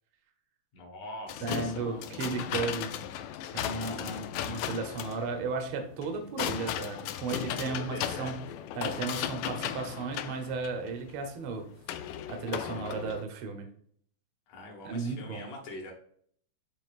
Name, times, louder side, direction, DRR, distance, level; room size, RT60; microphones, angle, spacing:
voice 1, 0.7-2.2 3.8-4.3 7.5-8.4 12.6-12.7 14.5-15.9, left 2 dB, 70° left, 0 dB, 2.9 m, -43 dB
sound 1, 1.3-13.2, left 10 dB, 85° left, 1.7 m, -36 dB
voice 2, 1.4-2.9 3.5-8.3 8.7-11.7 12.3-13.7 14.8-15.4, right 4 dB, 90° right, 5 dB, 1.1 m, -34 dB
9.9 x 3.9 x 2.5 m, 0.62 s
omnidirectional pair, 3.8 m